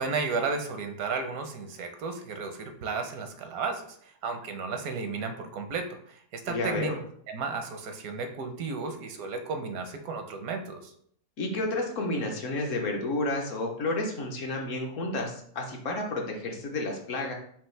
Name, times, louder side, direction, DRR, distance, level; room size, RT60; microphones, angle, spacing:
voice 1, 0.0-6.9 7.3-10.9, right 4 dB, 85° right, 6 dB, 1.1 m, -33 dB
voice 2, 6.5-7.0 11.4-17.3, left 2 dB, 65° left, 1 dB, 1.1 m, -31 dB
5.3 x 2.7 x 3.2 m, 0.63 s
omnidirectional pair, 1.5 m